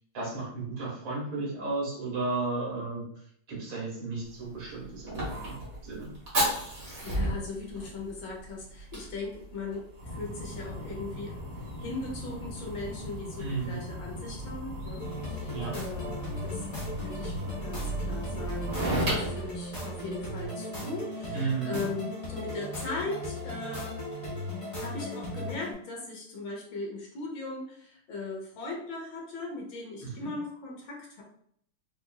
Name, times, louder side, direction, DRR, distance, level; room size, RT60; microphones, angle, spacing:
voice 1, 0.1-3.0 3.5-5.6 5.8-6.1 13.4-13.8 15.5-15.7 21.3-21.8 30.0-30.1, right 3 dB, 75° right, -5 dB, 2.3 m, -33 dB
Fire, 4.2-20.4, right 1 dB, 40° right, 1.6 m, -35 dB
voice 2, 6.8-16.6 17.0-24.0 24.8-31.2, left 3 dB, 70° left, -1 dB, 1.5 m, -39 dB
sound 1, 15.0-25.7, equal, 30° left, 0.6 m, -37 dB
4.9 x 2.5 x 2.3 m, 0.65 s
omnidirectional pair, 2.3 m